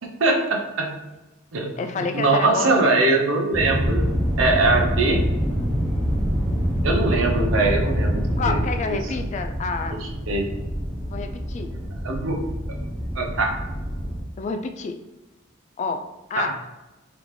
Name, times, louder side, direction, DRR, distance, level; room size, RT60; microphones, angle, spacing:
voice 1, 0.0-0.9 1.5-4.1 4.4-5.2 6.8-8.6 8.9-9.0 9.9-10.0 10.3-10.5 12.0-12.4 13.1-13.6 16.4-16.5, right 2 dB, 80° right, 2 dB, 0.7 m, -22 dB
voice 2, 1.8-2.7 7.6-7.7 8.4-10.0 11.1-11.7 14.4-15.0 15.8-16.6, left 4 dB, 35° left, 7 dB, 0.3 m, -29 dB
sound 1, 3.5-14.2, equal, 5° left, 1.1 m, -25 dB
3.8 x 3.4 x 3.1 m, 1.0 s
head